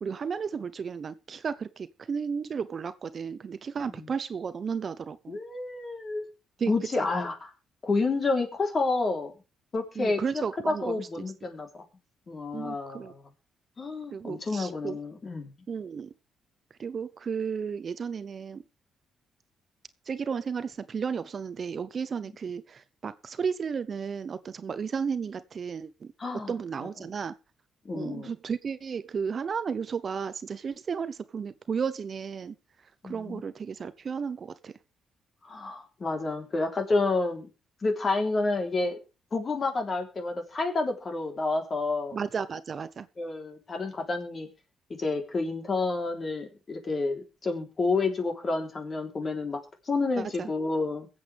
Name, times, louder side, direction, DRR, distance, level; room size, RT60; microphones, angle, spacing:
voice 1, 0.0-5.4 6.6-6.7 7.0-7.1 10.0-11.1 12.5-13.1 14.1-15.0 15.7-16.1 16.8-18.6 20.1-26.1 26.5-27.3 27.9-32.6 33.0-34.7 42.1-43.1 50.2-50.5, right 6 dB, 45° right, 0.8 m, -33 dB
voice 2, 5.3-6.3 6.7-7.5 7.8-9.3 9.7-11.8 12.3-13.2 13.8-15.5 26.2-26.5 27.9-28.3 33.0-33.4 35.4-37.5 37.8-39.0 39.3-42.2 43.2-44.5 45.0-49.6 49.9-51.1, left 3 dB, 40° left, 3.6 m, -29 dB
22.5 x 8.0 x 3.5 m
cardioid pair, 90°, 0 cm